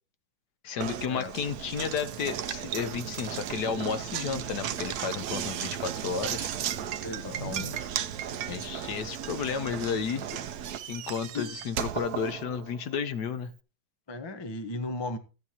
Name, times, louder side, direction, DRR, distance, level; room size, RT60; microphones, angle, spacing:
voice 1, 0.6-6.5 7.4-7.8 8.5-10.3 10.9-13.5, left 6 dB, 65° left, 1.2 m, -32 dB
Knock, 0.8-12.9, right 9 dB, 65° right, 1.0 m, -35 dB
voice 2, 7.0-7.9 11.3-11.5 14.1-15.2, left 2 dB, 45° left, 0.3 m, -36 dB
14.0 x 9.8 x 2.8 m
omnidirectional pair, 2.1 m